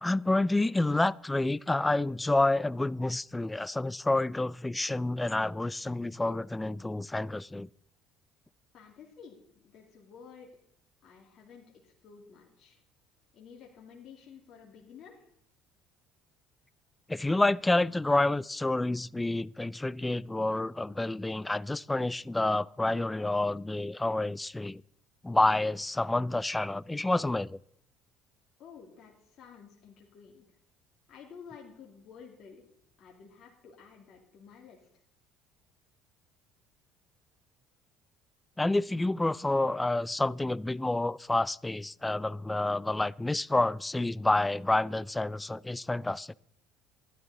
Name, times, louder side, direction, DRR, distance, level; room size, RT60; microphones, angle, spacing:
voice 1, 0.0-7.7 17.1-24.8 25.2-27.6 38.6-46.4, left 2 dB, 15° left, 0.4 m, -29 dB
voice 2, 8.7-10.5 11.0-12.8 13.3-15.3 28.6-30.5 31.1-32.7 33.0-34.9, left 6 dB, 55° left, 2.4 m, -52 dB
12.5 x 11.0 x 4.0 m
hypercardioid pair, 65°, 0 cm